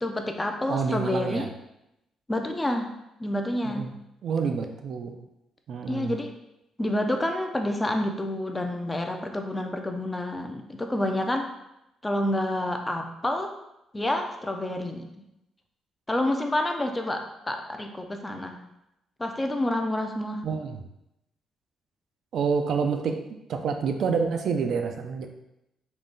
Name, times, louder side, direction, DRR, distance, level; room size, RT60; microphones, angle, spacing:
voice 1, 0.0-1.5 2.3-2.9 3.2-3.9 5.9-6.3 6.8-11.5 12.0-13.5 13.9-15.1 16.1-18.6 19.2-20.4, left 1 dB, 15° left, 4 dB, 0.5 m, -28 dB
voice 2, 0.7-1.5 3.6-3.9 4.2-5.2 5.7-6.2 20.4-20.9 22.3-25.3, right 5 dB, 65° right, 5 dB, 0.4 m, -28 dB
3.7 x 2.3 x 3.8 m, 0.87 s
cardioid pair, 90°, 0 cm